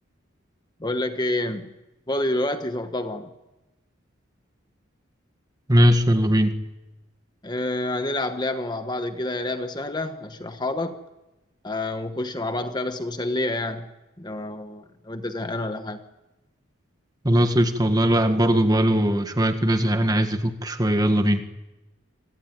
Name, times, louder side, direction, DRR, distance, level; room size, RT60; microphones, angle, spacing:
voice 1, 0.8-1.7 2.1-3.3 7.4-11.0 11.6-13.9 14.2-16.0, left 1 dB, 20° left, 8 dB, 1.2 m, -28 dB
voice 2, 5.7-6.5 17.2-21.4, equal, 20° right, 7 dB, 1.7 m, -20 dB
27.0 x 18.5 x 9.3 m, 1.0 s
head